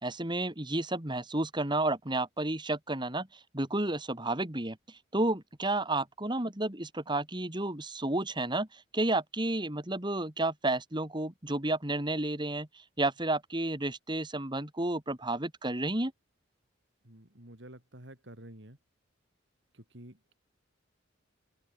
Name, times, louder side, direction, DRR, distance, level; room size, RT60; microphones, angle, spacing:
voice 1, 0.0-3.3 3.5-4.8 5.1-12.7 13.0-16.1, right 2 dB, 25° right, 2.7 m, -31 dB
voice 2, 17.0-18.8 19.7-20.3, right 1 dB, 60° right, 4.0 m, -50 dB
open air
head